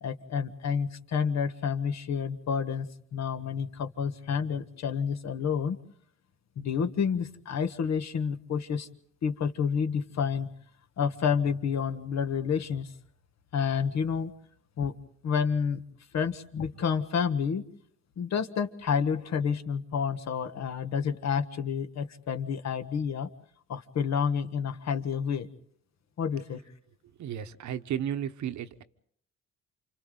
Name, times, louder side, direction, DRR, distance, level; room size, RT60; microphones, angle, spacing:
voice 1, 0.0-5.8 6.6-8.9 9.2-10.5 11.0-12.9 13.5-14.3 14.8-14.9 15.2-15.8 16.1-17.6 18.2-23.3 23.7-25.5 26.2-26.6, left 6 dB, 60° left, 9 dB, 1.4 m, -29 dB
voice 2, 27.2-28.8, right 9 dB, 70° right, 10 dB, 1.1 m, -33 dB
29.0 x 26.5 x 3.9 m, 0.66 s
cardioid pair, 90°, 30 cm